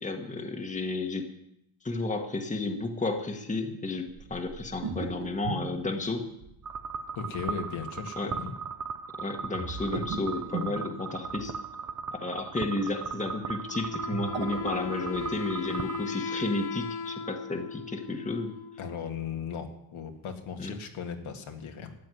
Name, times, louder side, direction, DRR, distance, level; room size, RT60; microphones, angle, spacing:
voice 1, 0.0-1.3 1.8-6.2 8.2-8.3 9.2-11.5 12.1-18.5 20.6-20.7, left 2 dB, 15° left, 5 dB, 1.4 m, -32 dB
sound 1, 4.2-6.9 9.5-11.6 13.9-15.4, right 4 dB, 60° right, 2.0 m, -38 dB
sound 2, 6.6-16.0, right 6 dB, 35° right, 0.8 m, -38 dB
voice 2, 7.2-8.5 18.8-21.9, left 6 dB, 70° left, 4 dB, 2.1 m, -37 dB
Wind instrument woodwind instrument, 13.7-19.2, left 5 dB, 50° left, 1.2 m, -37 dB
14.0 x 7.7 x 9.8 m, 0.83 s
cardioid pair, 135°, 50 cm